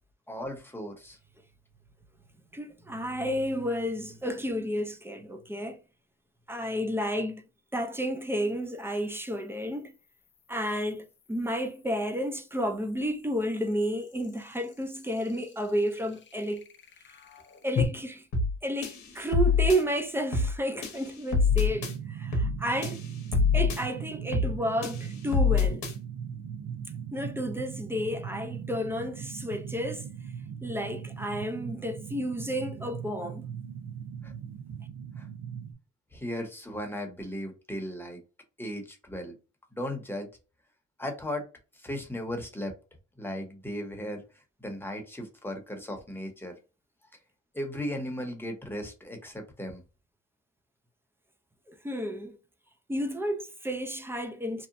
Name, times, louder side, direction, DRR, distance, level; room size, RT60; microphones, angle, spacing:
voice 1, 0.3-1.2 34.2-34.3 35.2-35.3 36.1-38.2 38.6-39.3 39.7-40.3 41.0-41.5 41.7-42.7 43.2-46.6 47.5-49.8, equal, 5° left, 0.9 m, -36 dB
voice 2, 2.5-5.8 6.5-7.4 7.7-9.9 10.5-16.6 17.6-18.3 18.6-23.0 23.5-25.8 27.1-30.1 30.6-33.5 51.7-52.4 52.9-54.7, equal, 10° right, 0.4 m, -31 dB
sound 1, 4.2-4.3 7.7-17.8, left 7 dB, 40° left, 0.6 m, -42 dB
sound 2, 18.3-18.6 18.8-19.8 20.3-20.6 20.8-21.9 22.3-22.6 22.8-23.8 24.3-24.6 24.8-25.9, left 5 dB, 70° left, 0.8 m, -25 dB
sound 3, 21.5-35.7, right 8 dB, 75° right, 0.5 m, -39 dB
2.8 x 2.1 x 2.5 m
cardioid pair, 90°, 30 cm